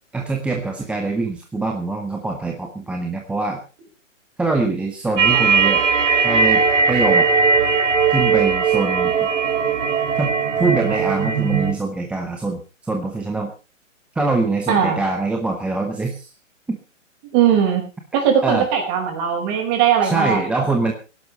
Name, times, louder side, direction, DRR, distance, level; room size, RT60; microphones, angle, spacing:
voice 1, 0.1-3.6 4.4-5.8 6.2-7.3 8.1-9.3 10.2-13.5 14.1-16.3 16.7-16.8 18.4-18.7 20.0-20.9, right 3 dB, 5° right, 2 dB, 0.8 m, -24 dB
sound 1, 5.2-11.7, right 5 dB, 65° right, 3.1 m, -18 dB
voice 2, 14.7-15.0 17.3-17.8 18.1-20.4, right 8 dB, 25° right, 4 dB, 4.9 m, -19 dB
17.5 x 11.5 x 4.5 m, 0.33 s
hypercardioid pair, 150°, 39 cm